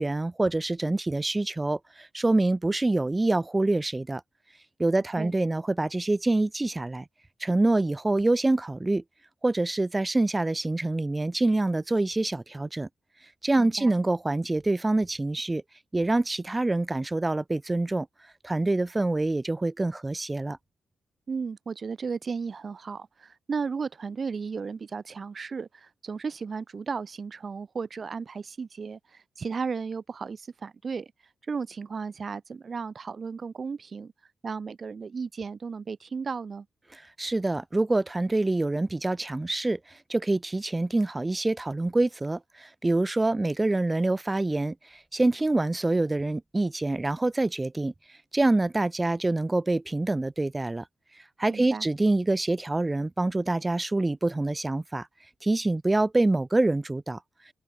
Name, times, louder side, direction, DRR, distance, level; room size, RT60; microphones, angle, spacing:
voice 1, 0.0-4.2 4.8-7.0 7.4-9.0 9.4-12.9 13.4-15.6 15.9-18.1 18.4-20.6 36.9-47.9 48.3-50.8 51.4-55.1 55.4-57.2, right 2 dB, 20° right, 3.1 m, -26 dB
voice 2, 13.6-13.9 21.3-31.1 31.5-34.1 34.4-36.7 51.5-51.9, right 5 dB, 50° right, 3.9 m, -34 dB
open air
cardioid pair, 65°, 0 cm